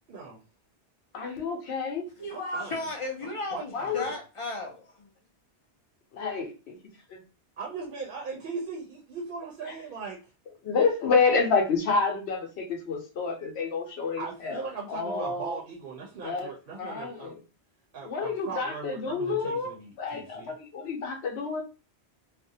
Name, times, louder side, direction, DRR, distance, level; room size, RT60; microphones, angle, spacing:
voice 1, 0.1-0.4 2.3-2.8 3.2-4.1 7.6-10.2 14.2-17.3 17.9-20.5, right 4 dB, 60° right, 0.7 m, -39 dB
voice 2, 1.1-2.0 3.7-4.1 6.1-6.7 10.6-15.6 16.2-16.5 16.8-17.3 18.0-19.7 20.0-21.6, left 4 dB, 75° left, 0.9 m, -28 dB
voice 3, 2.2-5.1, left 2 dB, 50° left, 0.4 m, -35 dB
2.5 x 2.0 x 2.6 m
omnidirectional pair, 1.1 m